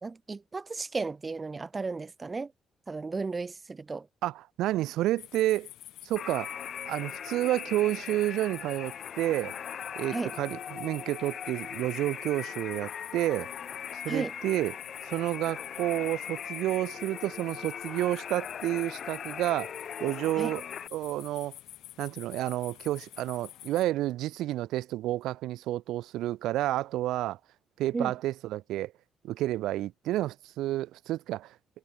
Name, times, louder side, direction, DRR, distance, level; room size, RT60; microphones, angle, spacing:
voice 1, 0.0-2.5 2.9-4.1 10.1-10.3 14.1-14.3 20.4-20.5 27.9-28.1, right 4 dB, 30° right, 2.2 m, -34 dB
voice 2, 4.2-5.7 6.0-6.5 6.9-9.6 10.0-13.5 13.9-14.7 15.0-19.7 20.0-20.6 20.9-21.6 22.0-27.4 27.8-28.9 29.2-31.6, right 15 dB, 90° right, 0.4 m, -30 dB
sound 1, 5.2-23.8, left 14 dB, 85° left, 1.5 m, -48 dB
sound 2, 6.2-20.9, left 8 dB, 55° left, 1.5 m, -40 dB
cardioid pair, 90°, 0 cm